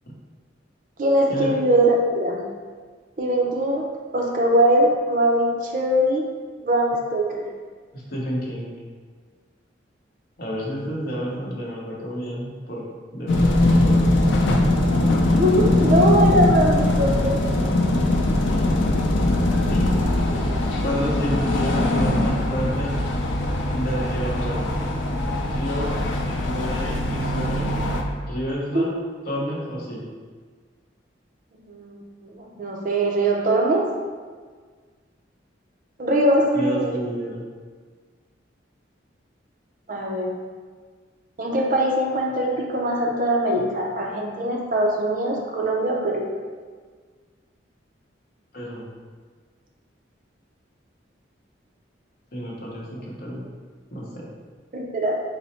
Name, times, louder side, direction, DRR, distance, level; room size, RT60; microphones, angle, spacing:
voice 1, 1.0-2.5 3.2-6.3 6.6-7.5 15.1-17.4 28.7-28.9 31.7-33.9 36.0-36.9 39.9-40.3 41.4-46.3 54.7-55.2, right 1 dB, 45° right, 0 dB, 0.5 m, -22 dB
voice 2, 7.9-8.7 10.4-12.9 13.1-14.1 18.5-18.8 19.7-20.0 20.8-23.0 23.7-24.7 25.1-26.1 26.4-27.7 28.2-29.0 29.3-30.1 36.5-37.4 48.5-48.8 52.3-53.4 53.9-54.3, equal, 50° left, -4 dB, 0.8 m, -30 dB
sound 1, 13.3-28.0, left 1 dB, 80° left, 0.5 m, -21 dB
4.1 x 2.0 x 4.1 m, 1.5 s
head